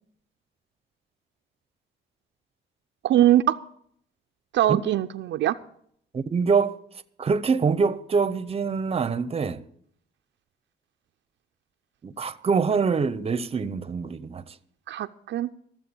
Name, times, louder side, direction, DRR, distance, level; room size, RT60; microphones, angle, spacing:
voice 1, 3.0-3.6 4.5-5.5 14.9-15.5, right 12 dB, 70° right, 0.5 m, -22 dB
voice 2, 6.1-6.8 7.2-9.6 12.0-14.5, right 5 dB, 30° right, 0.7 m, -25 dB
14.0 x 7.4 x 6.9 m
cardioid pair, 90°, 20 cm